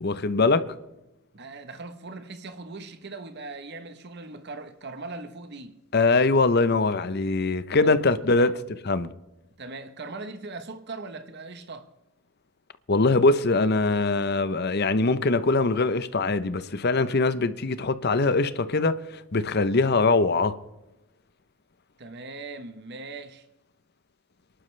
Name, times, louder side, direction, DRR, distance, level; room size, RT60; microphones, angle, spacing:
voice 1, 0.0-0.7 5.9-8.5 8.9-9.1 12.9-19.0 19.3-20.5, left 3 dB, 50° left, 0.8 m, -22 dB
voice 2, 1.3-5.8 7.8-8.0 8.4-8.6 9.6-11.9 22.0-23.5, right 3 dB, 50° right, 1.0 m, -40 dB
26.5 x 11.5 x 3.3 m
head